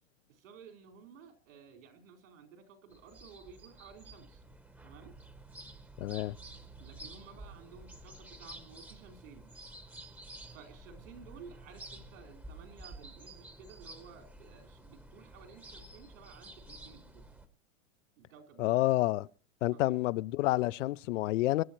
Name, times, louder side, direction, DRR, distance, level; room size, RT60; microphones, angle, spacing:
voice 1, 0.3-4.4 4.8-5.1 6.8-9.5 10.5-17.3 18.2-18.7 19.7-19.8, right 6 dB, 80° right, 4.4 m, -54 dB
sound 1, 2.9-17.5, right 2 dB, 5° right, 0.9 m, -51 dB
voice 2, 6.0-6.3 18.6-19.3 19.6-21.6, left 17 dB, 65° left, 0.6 m, -29 dB
25.5 x 11.0 x 3.0 m
supercardioid pair, 145°, 39 cm